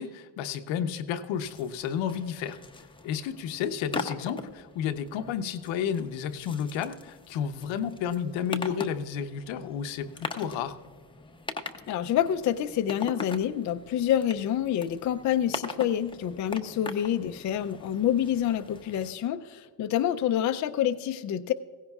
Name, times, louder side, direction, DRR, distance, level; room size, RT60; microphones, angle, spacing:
voice 1, 0.0-2.6 3.0-10.8, left 8 dB, 80° left, 9 dB, 0.9 m, -31 dB
sound 1, 1.3-19.1, left 3 dB, 10° left, 0.7 m, -42 dB
voice 2, 11.9-21.5, left 10 dB, 40° left, 8 dB, 0.5 m, -27 dB
16.5 x 16.0 x 2.4 m, 1.5 s
cardioid pair, 110°, 46 cm